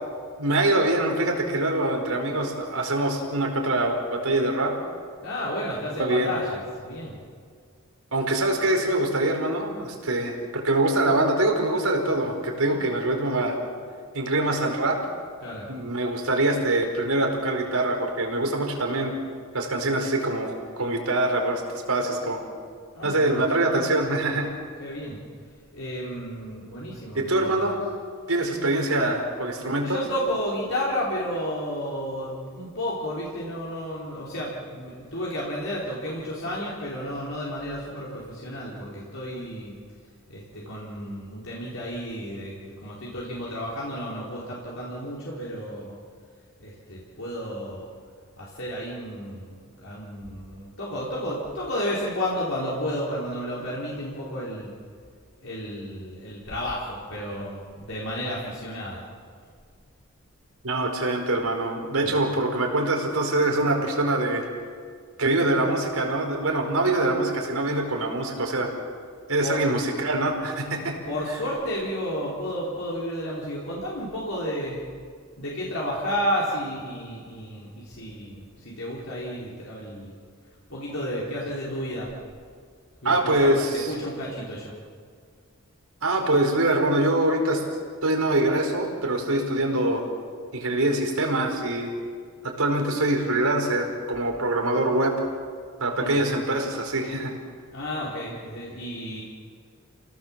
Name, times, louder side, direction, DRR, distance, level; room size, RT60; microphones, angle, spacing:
voice 1, 0.4-4.7 5.9-6.3 8.1-13.6 14.1-15.0 15.7-19.1 19.5-21.6 21.9-22.4 23.0-24.5 27.1-27.8 28.3-30.0 60.6-64.4 65.2-68.7 69.3-71.0 83.0-83.9 86.0-87.6 88.0-90.1 90.5-91.9 92.4-95.2 95.8-97.3, right 2 dB, 85° right, 2 dB, 4.8 m, -24 dB
voice 2, 5.2-7.2 12.7-12.9 15.4-15.7 22.9-23.5 24.8-25.2 25.7-27.9 29.8-39.7 40.3-46.0 46.6-47.9 48.4-54.7 55.4-59.1 62.0-62.2 69.4-69.6 71.0-74.8 75.4-80.1 80.7-82.1 83.0-84.7 95.9-96.2 97.7-99.2, equal, 65° left, -6 dB, 4.6 m, -32 dB
30.0 x 18.0 x 7.5 m, 2.1 s
head